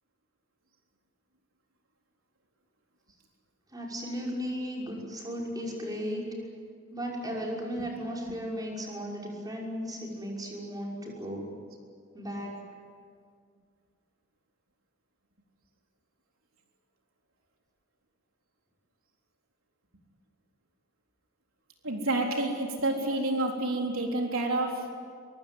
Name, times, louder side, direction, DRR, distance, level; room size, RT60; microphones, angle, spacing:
voice 1, 3.7-6.2 6.9-11.5 12.1-12.6, equal, 20° right, -2 dB, 5.8 m, -35 dB
voice 2, 21.8-24.9, right 2 dB, 85° right, 1 dB, 3.8 m, -29 dB
24.0 x 23.5 x 9.3 m, 2.1 s
head